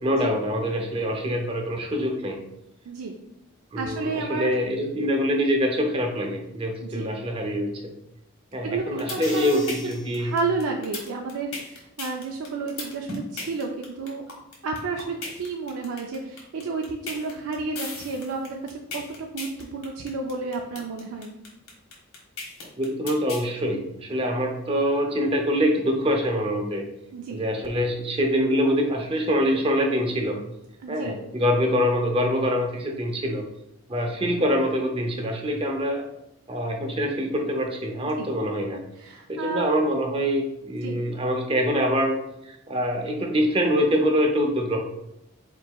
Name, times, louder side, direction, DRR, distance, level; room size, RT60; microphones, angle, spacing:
voice 1, 0.0-2.4 3.7-7.9 8.5-10.3 22.8-26.8 27.3-30.4 30.9-33.5 33.9-36.1 36.5-38.8 39.3-42.2 42.4-44.8, equal, 25° right, 3 dB, 0.6 m, -25 dB
voice 2, 3.8-4.5 6.8-7.1 8.6-14.2 14.6-21.3 27.1-27.4 30.8-31.2 38.0-38.3 39.0-39.7 40.8-41.0, right 4 dB, 85° right, 1 dB, 0.4 m, -31 dB
sound 1, 8.8-23.5, left 3 dB, 75° left, 1.4 m, -36 dB
4.6 x 4.1 x 2.3 m, 0.85 s
head